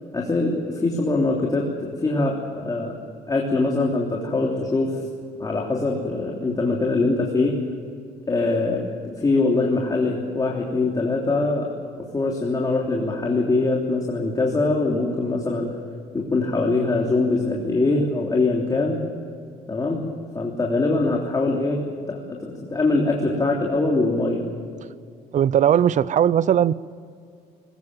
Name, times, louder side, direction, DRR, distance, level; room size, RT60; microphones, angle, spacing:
voice 1, 0.1-2.9 3.3-5.0 5.4-7.6 8.3-11.7 12.1-15.7 16.1-19.0 19.7-20.0 20.3-21.8 22.1-24.5, left 3 dB, 20° left, -1 dB, 3.3 m, -23 dB
voice 2, 25.3-26.7, right 9 dB, 45° right, 20 dB, 0.6 m, -18 dB
21.0 x 20.0 x 7.6 m, 2.3 s
cardioid pair, 110°, 17 cm